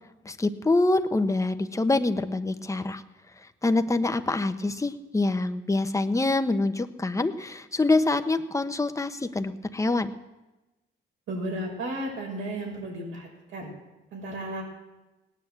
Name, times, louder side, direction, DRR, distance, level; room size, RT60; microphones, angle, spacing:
voice 1, 0.2-3.0 3.6-10.1, left 2 dB, 15° left, 8 dB, 1.1 m, -25 dB
voice 2, 11.3-13.7 14.1-14.6, right 1 dB, 80° right, 0 dB, 6.0 m, -34 dB
17.5 x 9.8 x 7.9 m, 1.1 s
cardioid pair, 90°, 20 cm